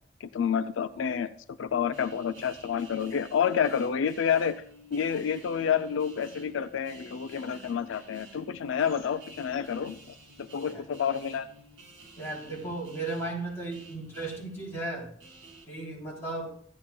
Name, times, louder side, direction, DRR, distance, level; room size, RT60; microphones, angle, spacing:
voice 1, 0.2-4.6 4.9-11.5, left 7 dB, 80° left, 10 dB, 0.4 m, -29 dB
sound 1, 1.9-15.6, right 2 dB, 80° right, 4.2 m, -52 dB
voice 2, 12.2-15.1 15.7-16.5, right 2 dB, 15° left, -4 dB, 3.1 m, -35 dB
14.5 x 8.6 x 2.3 m, 0.62 s
head